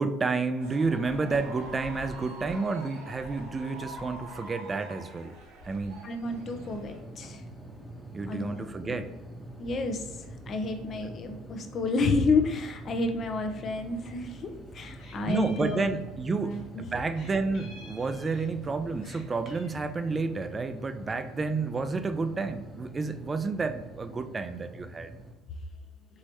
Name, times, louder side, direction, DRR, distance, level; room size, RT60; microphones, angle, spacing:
voice 1, 0.0-5.3 5.6-6.0 8.1-9.1 15.3-16.6 16.9-25.1, right 4 dB, 30° right, 10 dB, 0.4 m, -30 dB
sound 1, 0.6-7.0, right 1 dB, 80° right, 0.9 m, -44 dB
voice 2, 6.0-7.4 8.3-9.0 9.6-10.0 10.5-15.8 16.4-16.9, left 3 dB, 50° left, 5 dB, 0.6 m, -30 dB
sound 2, 6.2-25.3, right 1 dB, 5° right, 0.9 m, -45 dB
Meow, 13.8-14.4 14.7-16.6 17.1-18.7 19.0-19.8, left 3 dB, 70° left, 1.3 m, -51 dB
4.6 x 3.0 x 2.9 m, 1.1 s
hypercardioid pair, 70°, 0 cm